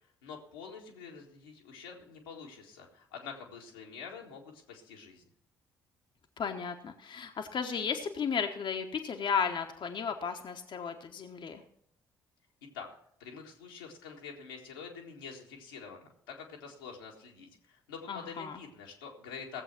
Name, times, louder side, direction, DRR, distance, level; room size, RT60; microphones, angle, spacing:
voice 1, 0.2-5.2 12.7-12.9 13.2-19.6, left 6 dB, 85° left, -1 dB, 1.7 m, -46 dB
voice 2, 6.4-11.6 18.1-18.6, left 6 dB, 45° left, 4 dB, 1.1 m, -34 dB
16.5 x 7.6 x 5.9 m, 0.70 s
figure-of-eight pair, 45°, 11 cm